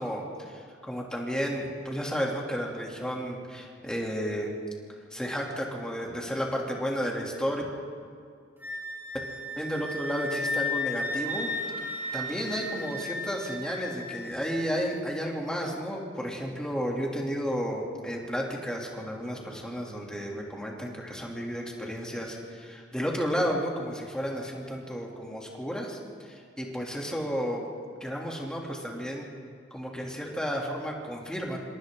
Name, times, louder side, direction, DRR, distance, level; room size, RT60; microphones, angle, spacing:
voice 1, 0.0-4.5 5.1-7.6 9.6-11.5 12.1-27.6 28.0-29.3 29.7-31.6, equal, 5° left, -2 dB, 3.0 m, -32 dB
Wind instrument woodwind instrument, 8.6-15.0, left 2 dB, 10° right, 5.0 m, -34 dB
27.5 x 26.0 x 3.9 m, 2.3 s
head